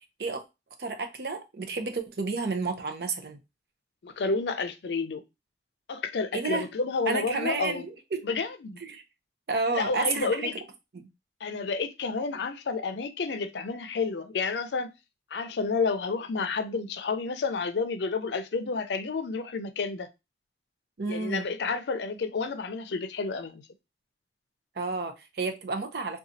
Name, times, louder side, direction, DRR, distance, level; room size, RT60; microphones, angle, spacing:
voice 1, 0.8-3.4 6.3-6.7 7.1-8.3 8.8-9.0 9.5-10.5 10.9-11.0 21.0-21.5 24.8-26.2, right 4 dB, 65° right, 0.6 m, -31 dB
voice 2, 4.0-5.2 5.9-7.8 8.2-8.8 9.7-10.5 11.4-14.9 15.3-20.1 21.1-23.6, left 4 dB, 80° left, 0.5 m, -30 dB
3.9 x 2.3 x 2.6 m
head